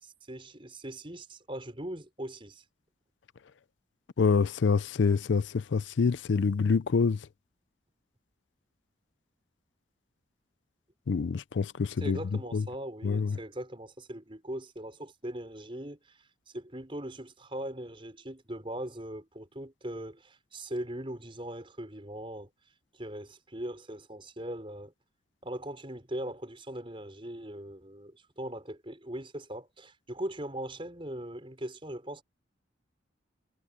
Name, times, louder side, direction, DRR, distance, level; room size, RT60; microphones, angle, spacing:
voice 1, 0.0-2.6 12.0-16.2 16.5-22.5 22.9-24.9 25.4-32.2, right 1 dB, 30° right, 5.5 m, -40 dB
voice 2, 4.2-7.2 11.1-12.2 12.5-12.6 13.0-13.4, left 5 dB, 80° left, 0.5 m, -26 dB
head